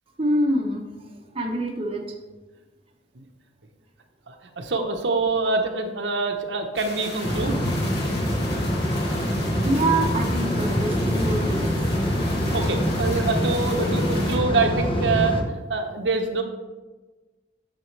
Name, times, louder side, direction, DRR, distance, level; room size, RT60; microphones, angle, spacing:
voice 1, 0.2-2.1 9.6-11.8 13.7-14.1, right 1 dB, 30° right, 1 dB, 0.9 m, -26 dB
voice 2, 4.3-7.6 12.5-15.4 15.7-16.4, right 3 dB, 70° right, 4 dB, 0.9 m, -25 dB
sound 1, 6.7-14.4, left 2 dB, 60° left, 1.8 m, -37 dB
sound 2, 7.2-15.4, equal, 30° left, 0.9 m, -24 dB
9.1 x 6.8 x 3.2 m, 1.2 s
head